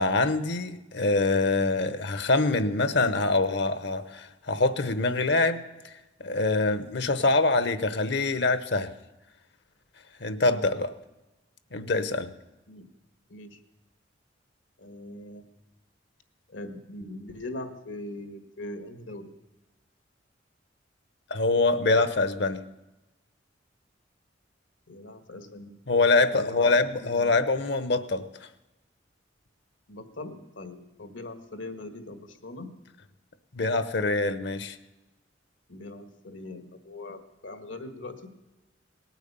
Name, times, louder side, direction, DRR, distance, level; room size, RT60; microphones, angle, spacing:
voice 1, 0.0-5.6 6.2-8.9 10.2-10.9 11.7-12.3 21.3-22.6 25.9-28.2 33.5-34.8, left 3 dB, 60° left, 12 dB, 0.9 m, -24 dB
voice 2, 14.8-15.4 16.5-19.3 24.9-25.8 26.3-26.7 27.0-27.4 29.9-32.7 35.7-38.3, left 2 dB, 80° left, 7 dB, 1.7 m, -41 dB
18.5 x 9.1 x 6.9 m, 1.0 s
head